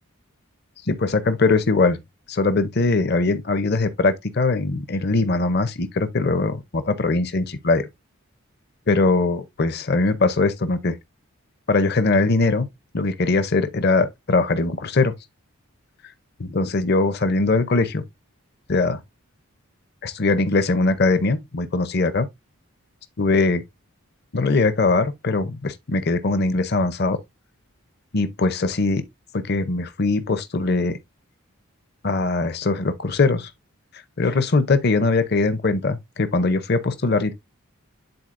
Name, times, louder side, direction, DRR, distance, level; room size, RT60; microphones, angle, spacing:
voice 1, 0.9-2.0 2.3-7.9 8.9-11.0 11.7-12.7 12.9-15.1 16.4-18.0 18.7-19.0 20.0-22.3 23.2-23.6 24.3-27.2 28.1-29.0 29.3-31.0 32.0-33.5 33.9-37.3, left 3 dB, 45° left, 0.6 m, -21 dB
10.5 x 3.9 x 2.5 m
head